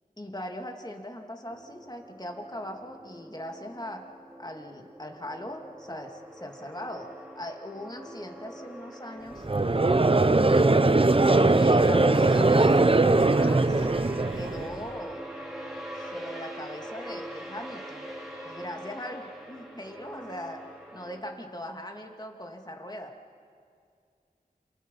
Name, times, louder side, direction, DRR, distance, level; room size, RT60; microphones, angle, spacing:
voice 1, 0.2-4.0 4.4-7.1 7.3-10.7 11.2-12.8 13.2-13.9 14.3-15.2 15.9-18.1 18.4-20.6 20.9-23.1, left 1 dB, 25° left, 3 dB, 2.9 m, -40 dB
sound 1, 1.5-21.2, right 1 dB, ahead, 5.1 m, -43 dB
Conversation / Crowd, 9.4-14.7, right 2 dB, 35° right, 0.9 m, -20 dB
28.0 x 27.5 x 5.8 m, 2.3 s
cardioid pair, 40°, 16 cm